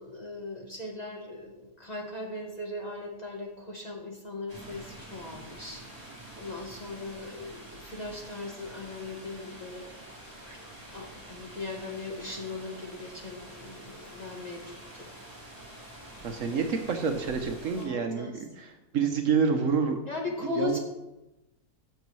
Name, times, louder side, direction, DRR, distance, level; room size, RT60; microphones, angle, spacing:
voice 1, 0.0-9.9 10.5-10.6 10.9-15.1 16.5-17.0 17.8-18.4 20.1-20.8, left 2 dB, 30° left, 0 dB, 1.2 m, -39 dB
sound 1, 4.5-17.9, right 1 dB, 15° right, 2.2 m, -47 dB
voice 2, 16.2-20.0 20.6-20.8, right 6 dB, 65° right, 5 dB, 1.0 m, -28 dB
12.5 x 6.8 x 3.1 m, 0.98 s
omnidirectional pair, 1.6 m